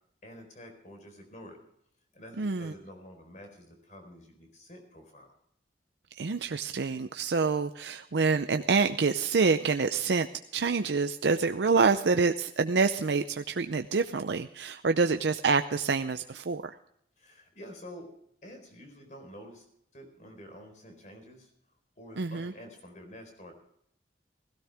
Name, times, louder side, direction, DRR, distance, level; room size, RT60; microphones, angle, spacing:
voice 1, 0.2-1.6 2.1-5.3 17.2-18.1 18.4-19.6 19.9-21.5 22.0-23.6, equal, 45° left, 5 dB, 4.3 m, -48 dB
voice 2, 2.4-2.7 6.2-10.3 10.5-16.6 22.2-22.5, right 4 dB, 80° right, 8 dB, 0.6 m, -27 dB
17.0 x 16.5 x 3.4 m, 0.71 s
head